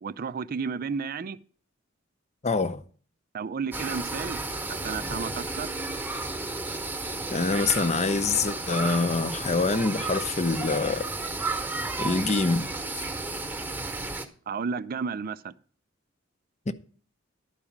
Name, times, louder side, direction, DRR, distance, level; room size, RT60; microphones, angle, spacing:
voice 1, 0.0-1.4 3.3-4.4 4.7-5.7 14.5-15.5, right 5 dB, 45° right, 0.4 m, -32 dB
voice 2, 2.4-2.8 7.3-11.1 12.0-12.7 16.7-16.8, left 3 dB, 35° left, 0.7 m, -25 dB
sound 1, 3.7-14.3, right 3 dB, 10° right, 1.1 m, -33 dB
11.5 x 5.0 x 7.2 m
head